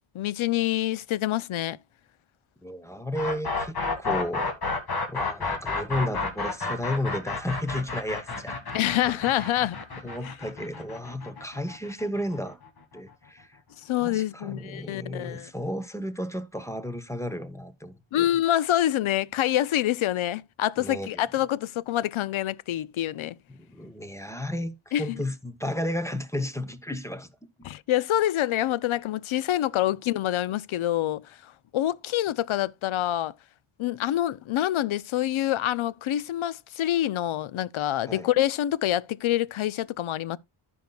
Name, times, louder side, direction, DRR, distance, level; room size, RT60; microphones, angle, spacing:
voice 1, 0.1-1.8 8.7-9.8 13.8-15.5 18.1-23.4 24.9-25.2 27.6-33.3 33.8-40.4, left 13 dB, 75° left, 0.6 m, -26 dB
voice 2, 2.6-4.5 5.1-8.6 10.0-12.6 12.9-13.6 14.0-18.3 20.8-21.1 23.5-27.3 38.0-38.3, left 1 dB, 5° left, 0.8 m, -33 dB
sound 1, 3.1-13.0, left 3 dB, 50° left, 2.1 m, -31 dB
14.5 x 5.5 x 2.3 m
wide cardioid pair, 120°, 49 cm